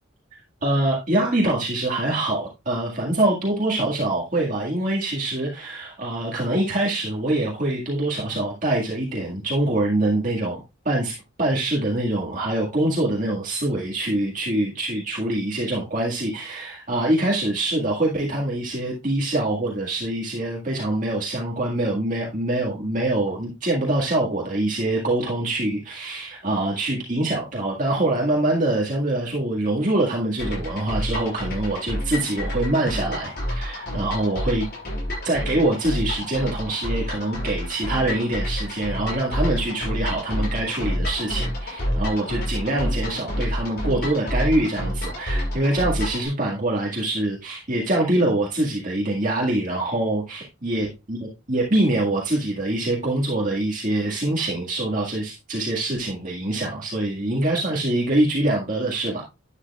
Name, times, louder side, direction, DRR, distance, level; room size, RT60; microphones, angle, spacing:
voice 1, 0.6-34.7 35.2-51.2 51.5-59.2, right 1 dB, 40° right, -3 dB, 1.9 m, -24 dB
sound 1, 30.4-46.3, equal, 50° left, 6.1 m, -28 dB
11.5 x 9.2 x 2.4 m, 0.25 s
head